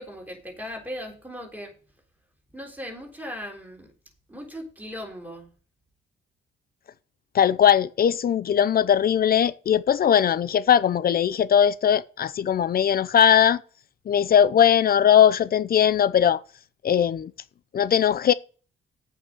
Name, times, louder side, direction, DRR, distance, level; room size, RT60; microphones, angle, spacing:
voice 1, 0.0-1.7 2.5-3.9 4.3-5.5, equal, 10° right, 3.8 m, -38 dB
voice 2, 7.3-13.6 14.1-16.4 16.8-17.3 17.7-18.3, left 9 dB, 50° left, 0.6 m, -19 dB
8.4 x 5.6 x 7.7 m
cardioid pair, 90°, 20 cm